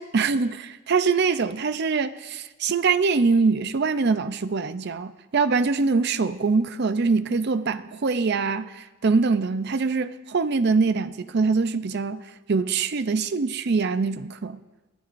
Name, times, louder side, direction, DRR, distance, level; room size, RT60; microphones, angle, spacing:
voice 1, 0.0-14.6, right 4 dB, 50° right, 0.5 m, -23 dB
24.0 x 12.0 x 2.6 m
head